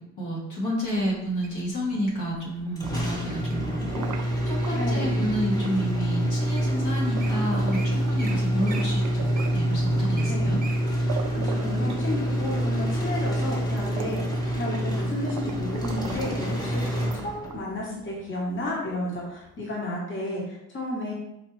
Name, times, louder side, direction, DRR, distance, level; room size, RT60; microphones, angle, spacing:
voice 1, 0.2-10.6, equal, 80° left, -5 dB, 1.3 m, -30 dB
Wild animals, 0.9-1.6 2.3-2.6 3.1-3.6 4.1-5.0 5.6-5.7 6.3-6.4 6.6-6.7 7.0-7.3 7.7-7.9 8.2-8.3 8.6-10.8 11.3-11.4, right 4 dB, 30° right, 0.7 m, -41 dB
sound 1, 2.7-4.7 5.6-5.8 6.2-8.3 8.6-10.3 10.8-10.9 11.1-12.6 13.2-13.3 13.7-15.0 15.3-16.4 17.0-17.8, right 7 dB, 75° right, 0.4 m, -40 dB
sound 2, 2.8-17.7, equal, 15° left, 1.0 m, -26 dB
voice 2, 4.7-5.3 10.3-10.5 11.0-11.1 11.4-21.1, left 1 dB, 40° left, -3 dB, 1.1 m, -32 dB
4.2 x 2.3 x 3.1 m, 0.84 s
cardioid pair, 90°, 30 cm